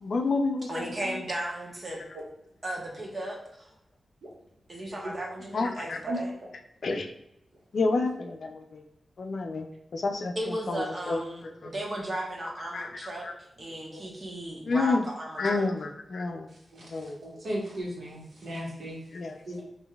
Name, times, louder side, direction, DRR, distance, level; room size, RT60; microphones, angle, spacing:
voice 1, 0.0-1.2 5.5-6.0 6.8-7.1 7.7-8.8 9.2-9.7 9.9-11.2 11.6-11.7 12.7-12.9 13.2-13.3 14.7-15.0 15.4-16.5 16.9-17.2 19.1-19.3, left 3 dB, 65° left, 4 dB, 0.5 m, -29 dB
voice 2, 0.7-2.0 2.6-3.7 4.7-6.3 10.3-15.6, right 1 dB, 35° right, -2 dB, 1.0 m, -35 dB
voice 3, 16.7-19.0 19.5-19.6, right 1 dB, 65° right, -4 dB, 1.3 m, -36 dB
4.9 x 2.6 x 2.3 m, 0.86 s
wide cardioid pair, 125°, 0 cm